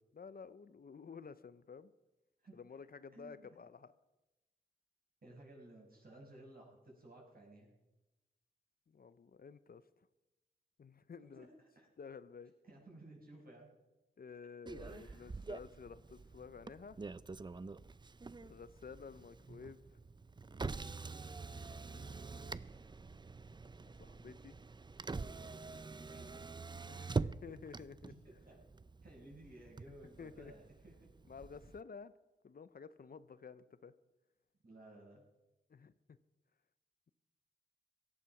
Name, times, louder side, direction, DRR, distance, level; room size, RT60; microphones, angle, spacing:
voice 1, 0.1-1.9 2.5-3.9 8.9-9.8 10.8-11.5 12.0-12.5 14.2-17.0 18.4-20.0 21.7-23.2 23.6-24.5 26.8-28.1 30.2-30.5 31.3-32.1 32.4-33.9 35.7-36.2, left 5 dB, 55° left, 14 dB, 0.6 m, -52 dB
voice 2, 3.1-3.6 5.2-7.7 11.3-11.5 11.8-11.9 12.7-13.7 14.8-15.3 22.6-22.8 26.0-26.4 27.5-27.6 28.2-28.6 29.0-30.9 34.6-35.2, right 1 dB, 55° right, -2 dB, 6.1 m, -57 dB
Motor vehicle (road), 14.7-31.8, right 4 dB, 25° right, 0.5 m, -45 dB
17.0 x 11.5 x 5.9 m, 1.0 s
cardioid pair, 65°, 19 cm